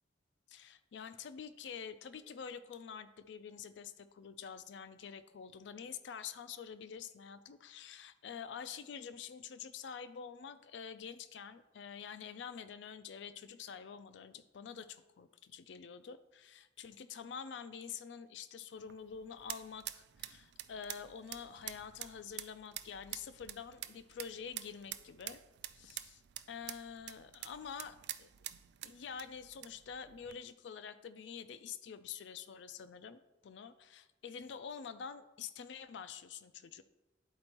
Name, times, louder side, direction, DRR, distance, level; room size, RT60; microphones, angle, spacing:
voice 1, 0.5-25.4 25.7-26.2 26.5-28.5 28.8-36.8, left 7 dB, 70° left, 12 dB, 0.4 m, -47 dB
sound 1, 18.7-30.4, right 13 dB, 65° right, 0.3 m, -48 dB
11.0 x 4.3 x 2.9 m, 1.0 s
head